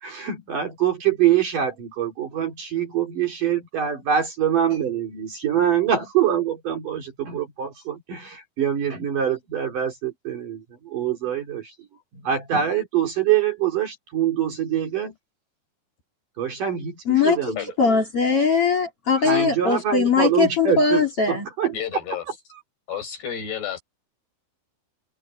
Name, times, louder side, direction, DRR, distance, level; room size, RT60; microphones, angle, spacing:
voice 1, 0.0-11.7 12.2-15.1 16.4-18.0 19.2-21.7, right 9 dB, 50° right, 4.3 m, -24 dB
voice 2, 17.0-21.5, left 5 dB, 35° left, 3.1 m, -21 dB
voice 3, 19.3-19.8 21.7-22.3 22.9-23.8, left 8 dB, 60° left, 9.1 m, -32 dB
open air
omnidirectional pair, 5.3 m